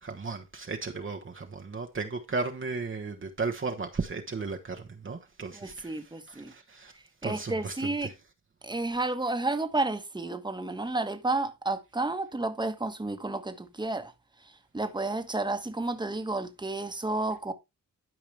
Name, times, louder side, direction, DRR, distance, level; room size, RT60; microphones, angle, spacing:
voice 1, 0.0-6.9 7.2-8.1, right 4 dB, 35° right, 1.1 m, -35 dB
voice 2, 5.5-6.5 7.2-8.1 8.6-14.1 14.7-17.5, right 2 dB, 15° right, 1.3 m, -31 dB
12.0 x 4.8 x 3.4 m
cardioid pair, 70°, 33 cm